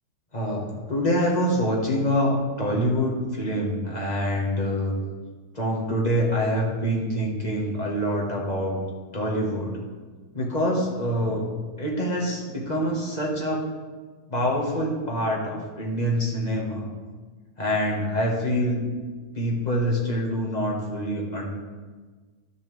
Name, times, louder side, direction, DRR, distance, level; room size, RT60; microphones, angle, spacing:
voice 1, 0.3-4.9 5.5-8.8 9.1-9.7 10.3-11.4 11.8-13.7 14.3-16.9 17.6-18.9 19.3-21.5, equal, 25° left, -2 dB, 1.7 m, -25 dB
11.5 x 6.9 x 3.5 m, 1.4 s
omnidirectional pair, 1.7 m